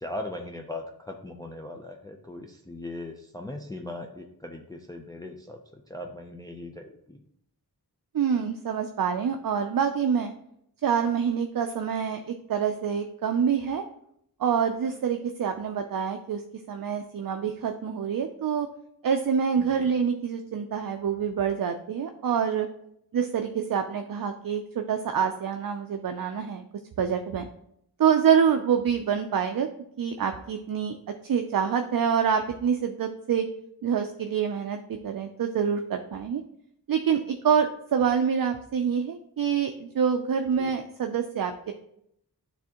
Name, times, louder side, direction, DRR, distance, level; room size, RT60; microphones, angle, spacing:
voice 1, 0.0-5.6 5.9-7.2 19.6-19.9 40.6-40.7, left 1 dB, 10° left, 3 dB, 0.5 m, -39 dB
voice 2, 8.1-10.3 10.8-13.8 14.4-16.4 16.7-18.7 19.0-22.7 23.1-26.6 27.0-27.5 28.0-29.7 30.0-31.0 31.2-33.5 33.8-36.4 36.9-41.7, right 7 dB, 60° right, 6 dB, 0.5 m, -26 dB
10.0 x 3.5 x 2.9 m, 0.74 s
wide cardioid pair, 80°, 38 cm